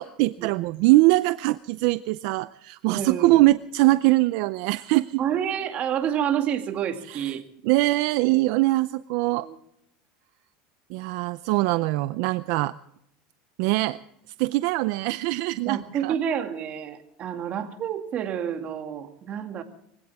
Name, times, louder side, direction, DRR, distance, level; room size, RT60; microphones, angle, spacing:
voice 1, 0.0-5.2 7.1-7.4 7.6-9.5 10.9-12.7 13.6-14.0 14.4-16.2, right 19 dB, 65° right, 15 dB, 0.5 m, -22 dB
voice 2, 2.9-3.4 5.2-7.4 9.4-9.6 15.7-19.6, right 9 dB, 40° right, 6 dB, 2.3 m, -29 dB
23.5 x 17.0 x 3.6 m, 0.77 s
supercardioid pair, 130°, 3 cm